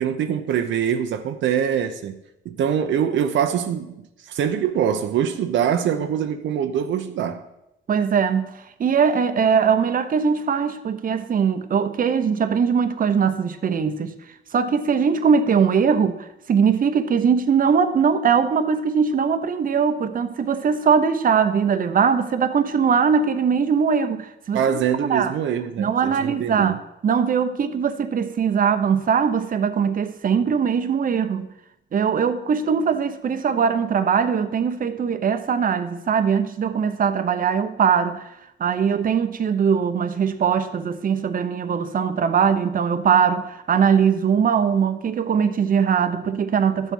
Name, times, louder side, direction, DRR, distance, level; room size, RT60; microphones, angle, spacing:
voice 1, 0.0-2.2 2.4-7.4 24.5-26.8, right 8 dB, 75° right, 0.8 m, -24 dB
voice 2, 7.9-8.5 8.8-14.1 14.5-24.6 25.1-25.3 25.8-26.8 27.0-31.5 31.9-38.3 38.6-46.9, right 6 dB, 45° right, 0.9 m, -21 dB
12.5 x 7.4 x 5.5 m
cardioid pair, 90°, 20 cm